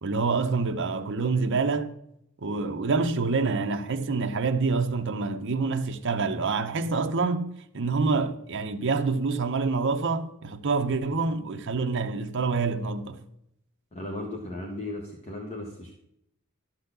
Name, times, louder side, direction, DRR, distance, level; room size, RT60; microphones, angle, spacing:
voice 1, 0.0-1.9 2.4-13.2, right 4 dB, 60° right, 0.7 m, -27 dB
voice 2, 13.9-15.9, left 1 dB, 30° left, 1.1 m, -36 dB
12.0 x 4.1 x 6.8 m
head